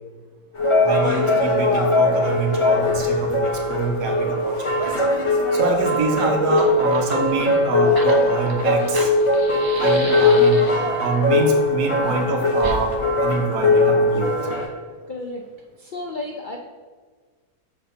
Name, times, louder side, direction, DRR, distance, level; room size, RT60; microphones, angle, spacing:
sound 1, 0.5-14.7, left 2 dB, 25° left, 0.8 m, -20 dB
voice 1, 0.8-5.0 5.5-9.1 9.8-10.7 11.0-14.5, right 3 dB, 85° right, 3 dB, 1.5 m, -25 dB
Fire, 6.4-11.0 12.6-12.8, right 1 dB, 35° right, 0.3 m, -34 dB
voice 2, 15.1-15.4 15.8-16.6, left 2 dB, 75° left, 1 dB, 0.4 m, -32 dB
6.7 x 4.3 x 5.4 m, 1.5 s
omnidirectional pair, 1.7 m